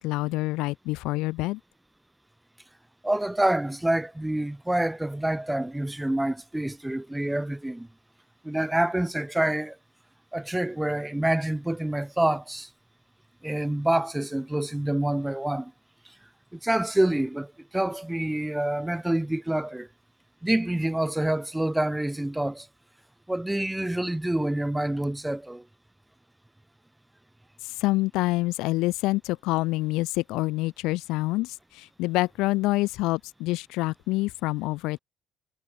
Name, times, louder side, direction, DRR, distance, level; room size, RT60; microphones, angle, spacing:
voice 1, 0.0-1.6 27.6-35.0, left 20 dB, 70° left, 3.4 m, -27 dB
voice 2, 3.0-7.9 8.4-9.8 10.3-12.7 13.4-15.7 16.0-16.1 16.5-19.9 20.4-22.7 23.3-25.6, right 1 dB, 10° right, 4.8 m, -27 dB
hypercardioid pair, 55°, 0 cm